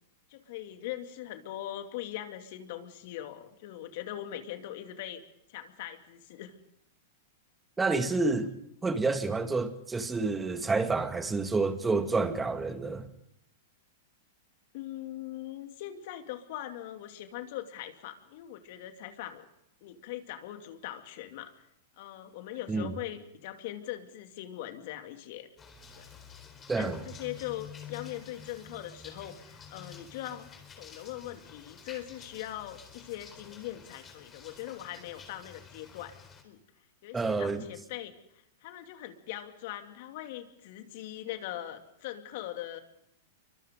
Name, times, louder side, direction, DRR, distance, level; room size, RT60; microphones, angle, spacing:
voice 1, 0.3-5.2 5.5-6.6 8.4-8.5 14.7-19.4 19.8-21.5 22.0-25.5 26.0-26.1 26.8-30.5 30.8-36.1 36.4-36.6 37.0-38.1 38.6-42.8, left 13 dB, 60° left, 2.5 m, -41 dB
voice 2, 7.8-8.5 8.8-13.1 22.7-22.9 26.7-27.0 37.1-37.6, right 3 dB, 15° right, 2.1 m, -29 dB
sound 1, 25.6-36.4, left 6 dB, 25° left, 4.2 m, -50 dB
29.0 x 24.5 x 3.9 m
hypercardioid pair, 115°, 0 cm